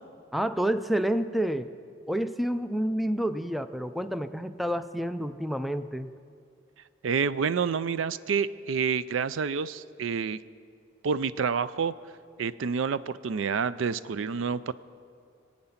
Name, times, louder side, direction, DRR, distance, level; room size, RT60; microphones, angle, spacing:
voice 1, 0.3-1.7 2.1-6.1, right 1 dB, ahead, 11 dB, 0.3 m, -29 dB
voice 2, 7.0-10.4 11.0-11.9 12.4-14.7, right 6 dB, 70° right, 16 dB, 0.4 m, -28 dB
23.0 x 8.8 x 5.8 m, 2.3 s
head